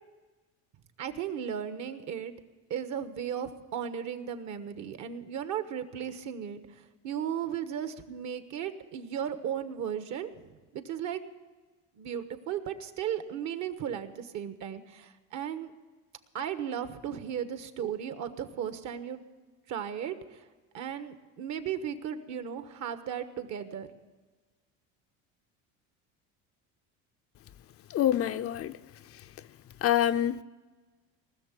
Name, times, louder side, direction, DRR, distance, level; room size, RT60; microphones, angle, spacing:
voice 1, 1.0-2.3 2.7-11.2 11.9-15.7 16.3-19.2 19.7-20.5 20.7-23.9, right 9 dB, 55° right, 1.3 m, -36 dB
voice 2, 27.9-28.8 29.8-30.4, left 11 dB, 45° left, 0.5 m, -26 dB
19.0 x 6.7 x 9.7 m
cardioid pair, 110°, 34 cm